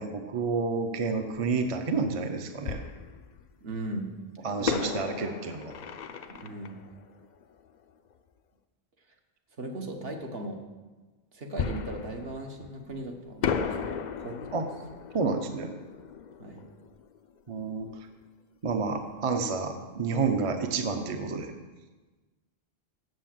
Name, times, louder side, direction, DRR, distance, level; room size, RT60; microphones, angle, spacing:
voice 1, 0.0-2.8 4.4-5.7 14.5-14.7 15.1-15.8 17.5-18.1 18.6-21.5, right 4 dB, 35° right, 6 dB, 0.7 m, -30 dB
Fireworks, 1.4-1.5 2.6-3.8 4.6-8.1 11.6-13.0 13.4-18.0 18.2-18.3 18.8-19.1, left 7 dB, 55° left, 0.6 m, -35 dB
voice 2, 3.6-4.1 4.6-4.9 6.3-6.8 9.6-10.6 11.3-14.4 16.4-16.7, right 2 dB, 65° right, 3 dB, 1.4 m, -38 dB
7.8 x 6.9 x 7.5 m, 1.2 s
omnidirectional pair, 1.1 m